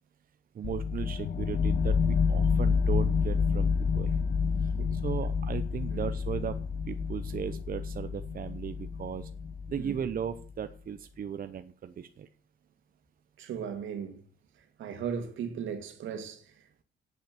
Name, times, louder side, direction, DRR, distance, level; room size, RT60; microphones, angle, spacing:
voice 1, 0.5-4.1 4.6-6.6 6.9-9.3 9.7-12.3, right 8 dB, 45° right, 0.8 m, -37 dB
sound 1, 0.6-10.4, left 5 dB, 50° left, 1.2 m, -29 dB
voice 2, 13.4-14.2 14.8-16.8, right 7 dB, 75° right, 2.2 m, -37 dB
8.9 x 8.3 x 6.7 m
cardioid pair, 90°, 20 cm